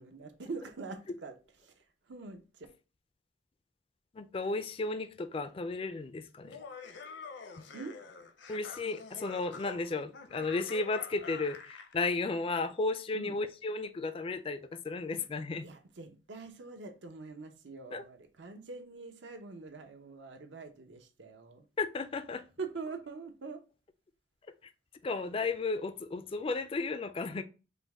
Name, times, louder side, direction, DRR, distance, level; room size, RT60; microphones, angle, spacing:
voice 1, 0.0-1.3 1.6-2.7 7.7-8.0 13.1-13.3 15.6-21.7 22.6-23.6, right 4 dB, 70° right, 0.7 m, -44 dB
voice 2, 4.1-6.6 8.5-15.7 17.9-18.0 21.8-22.5 25.0-27.4, left 3 dB, 30° left, 0.3 m, -34 dB
Laughter, 6.4-12.0, left 5 dB, 70° left, 0.6 m, -47 dB
5.1 x 2.1 x 3.4 m
head